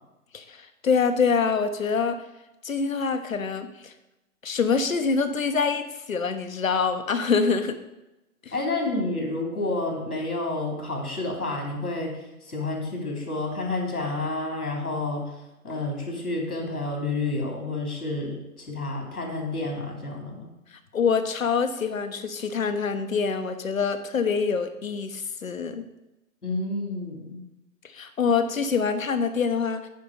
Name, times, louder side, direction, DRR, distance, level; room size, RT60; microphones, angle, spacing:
voice 1, 0.3-2.2 2.6-3.9 4.4-5.8 6.1-7.8 8.4-8.5 20.9-25.9 27.9-29.9, left 5 dB, 65° left, 9 dB, 1.1 m, -25 dB
voice 2, 8.5-15.3 15.6-20.5 26.4-27.4, left 2 dB, 85° left, 1 dB, 3.2 m, -30 dB
9.4 x 5.4 x 5.2 m, 0.95 s
figure-of-eight pair, 135°, 44 cm